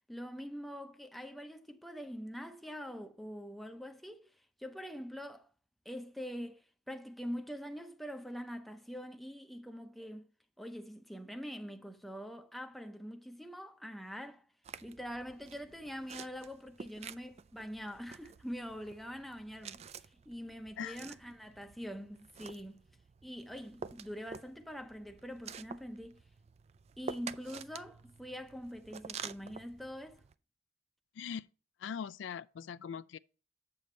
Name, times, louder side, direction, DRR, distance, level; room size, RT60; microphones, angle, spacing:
voice 1, 0.1-4.3 4.6-5.5 5.8-10.3 10.6-14.5 14.8-22.8 23.2-26.2 27.0-30.2, equal, ahead, 0.6 m, -44 dB
sound 1, 14.6-30.3, right 6 dB, 35° right, 0.3 m, -49 dB
voice 2, 31.1-31.5 31.8-33.2, left 7 dB, 75° left, 0.3 m, -41 dB
7.8 x 6.8 x 3.2 m
head